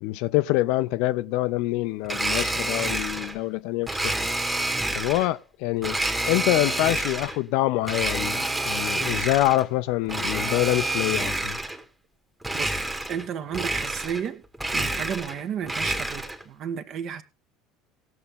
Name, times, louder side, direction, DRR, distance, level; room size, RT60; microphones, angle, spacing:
voice 1, 0.0-4.3 4.9-6.0 6.2-11.6, left 17 dB, 60° left, 0.5 m, -25 dB
Domestic sounds home sounds, 2.0-3.4 3.9-5.3 5.8-7.4 7.8-9.6 10.0-11.8 12.4-13.3 13.5-14.3 14.5-16.4, right 1 dB, 10° right, 1.4 m, -28 dB
voice 2, 12.5-14.4 14.7-17.2, right 8 dB, 50° right, 1.4 m, -32 dB
18.5 x 6.8 x 3.6 m
figure-of-eight pair, 65°, 0 cm